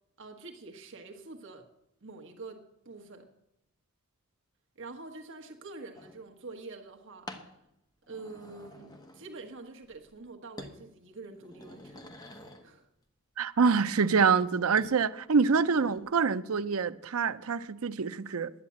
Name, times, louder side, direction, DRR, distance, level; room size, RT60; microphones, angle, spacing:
voice 1, 0.2-1.7 2.0-3.3 4.7-7.6 8.1-12.3 12.6-12.8, right 3 dB, 60° right, 1.3 m, -46 dB
sound 1, 5.9-6.2 7.3-7.5 8.0-9.5 9.8-10.3 10.6-10.8 11.2-12.7 14.8-15.0 15.4-16.0, left 1 dB, 20° left, 1.2 m, -48 dB
voice 2, 13.4-18.5, right 5 dB, 75° right, 0.6 m, -26 dB
11.0 x 9.7 x 8.5 m
head